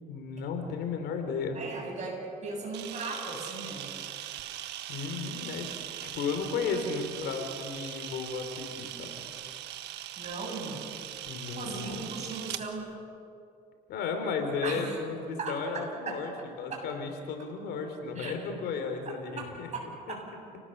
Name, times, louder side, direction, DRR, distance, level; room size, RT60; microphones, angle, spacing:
voice 1, 0.1-1.6 4.9-5.7 6.0-9.2 11.2-12.2 13.9-16.3 16.6-19.7 20.1-20.2, left 5 dB, 80° left, 5 dB, 3.9 m, -34 dB
voice 2, 1.5-3.9 10.2-10.8 11.5-12.9 14.6-15.0 15.4-15.6 16.1-16.2 16.7-16.8 18.2-18.3 20.1-20.2, right 3 dB, 45° right, 0 dB, 7.8 m, -37 dB
Camera, 2.7-12.6, right 12 dB, 80° right, 1.4 m, -40 dB
29.5 x 19.0 x 6.8 m, 2.5 s
cardioid pair, 110°, 17 cm